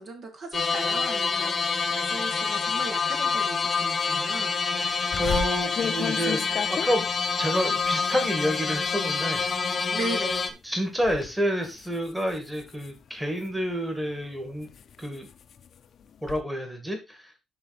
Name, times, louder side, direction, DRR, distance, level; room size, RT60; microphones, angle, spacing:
voice 1, 0.0-4.5 9.9-10.6, right 2 dB, 50° right, 4 dB, 1.9 m, -37 dB
sound 1, 0.5-10.5, left 5 dB, 35° left, 1.1 m, -27 dB
voice 2, 4.7-7.1 7.4-9.4 10.6-14.7 15.0-15.3 16.2-17.3, equal, 5° right, 4 dB, 2.0 m, -29 dB
sound 2, 5.1-10.5 10.9-11.3 11.6-13.7 14.2-16.4, left 7 dB, 55° left, 0.6 m, -36 dB
11.0 x 3.9 x 4.1 m, 0.26 s
cardioid pair, 105°, 0 cm